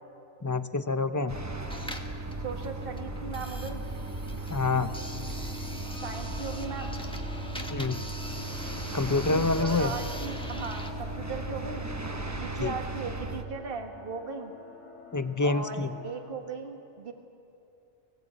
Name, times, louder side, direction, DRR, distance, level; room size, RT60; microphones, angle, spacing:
voice 1, 0.4-1.4 4.5-4.9 7.7-8.0 8.9-9.9 12.6-12.7 15.1-15.9, left 3 dB, 20° left, 11 dB, 0.6 m, -27 dB
sound 1, 1.3-13.4, right 2 dB, 15° right, 0.9 m, -36 dB
sound 2, 1.6-10.9, equal, 5° left, 1.3 m, -43 dB
voice 2, 2.4-3.9 6.0-7.0 9.1-11.9 12.3-14.5 15.4-17.1, right 4 dB, 50° right, 4 dB, 1.6 m, -38 dB
sound 3, 3.6-16.3, left 6 dB, 80° left, 2.5 m, -48 dB
24.0 x 17.5 x 8.6 m, 2.8 s
omnidirectional pair, 1.2 m